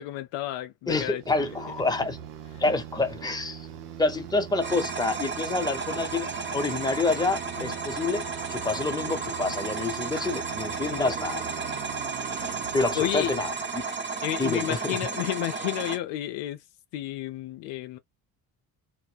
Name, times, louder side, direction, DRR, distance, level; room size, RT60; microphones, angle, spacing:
voice 1, 0.0-1.5 7.6-7.7 10.9-11.0 12.4-12.6 12.9-13.4 14.2-16.6 16.9-18.0, left 14 dB, 65° left, 0.6 m, -31 dB
voice 2, 0.9-2.2 2.6-3.7 4.0-11.4 12.7-13.9 14.4-15.0, left 3 dB, 10° left, 0.9 m, -28 dB
sound 1, 1.2-14.0, right 10 dB, 75° right, 0.7 m, -42 dB
sound 2, 4.6-16.0, right 4 dB, 25° right, 0.8 m, -33 dB
2.1 x 2.1 x 3.8 m
hypercardioid pair, 50°, 46 cm